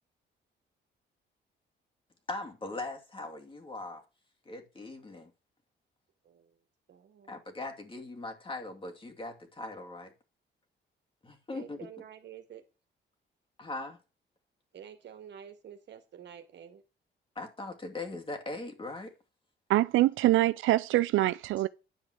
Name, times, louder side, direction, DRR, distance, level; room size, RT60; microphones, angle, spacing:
voice 1, 2.3-4.0 4.5-5.3 7.3-10.1 11.2-11.8 13.6-14.0 17.4-19.1, left 2 dB, 25° left, 2.6 m, -40 dB
voice 2, 6.2-6.6 6.9-7.4 11.5-12.6 14.7-16.8, right 9 dB, 65° right, 1.9 m, -49 dB
voice 3, 19.7-21.7, right 16 dB, 80° right, 0.5 m, -24 dB
10.5 x 4.8 x 7.9 m
cardioid pair, 90°, 20 cm